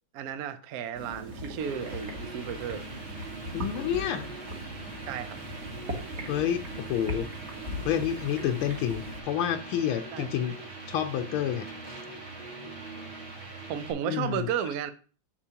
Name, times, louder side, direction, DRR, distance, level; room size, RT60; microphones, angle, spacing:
voice 1, 0.1-2.8 5.1-5.4 10.1-10.3 13.7-14.9, right 8 dB, 85° right, 0.8 m, -33 dB
sound 1, 0.9-9.2, equal, 40° right, 1.2 m, -39 dB
sound 2, 1.6-13.9, right 3 dB, 70° right, 2.5 m, -42 dB
voice 2, 3.5-4.3 6.3-7.3 7.8-10.6 10.9-11.7 14.1-14.5, left 10 dB, 80° left, 1.4 m, -29 dB
7.1 x 6.8 x 2.8 m
omnidirectional pair, 2.4 m